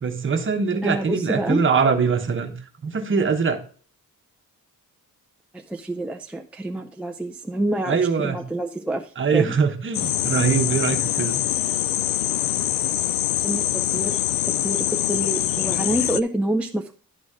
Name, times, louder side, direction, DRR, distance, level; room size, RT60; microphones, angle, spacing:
voice 1, 0.0-2.5 2.8-3.6 7.9-8.4 9.2-11.4, right 5 dB, 35° right, 5 dB, 1.1 m, -22 dB
voice 2, 0.8-1.6 5.5-9.5 13.4-14.2 14.6-16.9, right 1 dB, 5° right, 3 dB, 0.4 m, -27 dB
sound 1, 9.9-16.2, left 13 dB, 70° left, 0.5 m, -24 dB
11.0 x 4.1 x 4.8 m, 0.43 s
wide cardioid pair, 175°, 35 cm